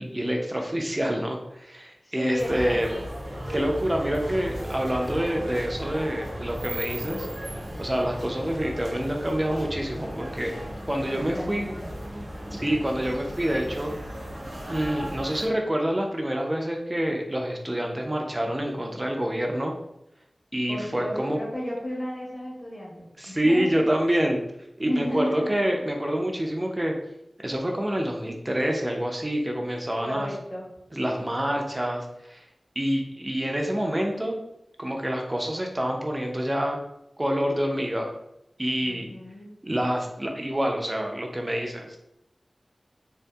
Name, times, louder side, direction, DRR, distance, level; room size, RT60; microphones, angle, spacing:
voice 1, 0.0-2.9 3.5-7.3 7.8-10.6 10.9-11.7 12.5-13.9 14.7-19.7 20.5-21.4 23.2-24.4 24.8-27.0 27.4-30.3 30.9-32.4 32.8-34.4 34.8-36.8 37.2-38.1 38.6-39.1 39.6-42.1, equal, 25° right, 1 dB, 0.4 m, -27 dB
voice 2, 2.0-3.0 11.1-11.9 20.7-23.8 24.8-25.6 30.0-30.7 38.8-39.5, equal, 40° left, -5 dB, 0.9 m, -33 dB
sound 1, 2.4-15.5, equal, 80° right, 0.8 m, -36 dB
2.7 x 2.4 x 2.2 m, 0.83 s
wide cardioid pair, 60°, 0 cm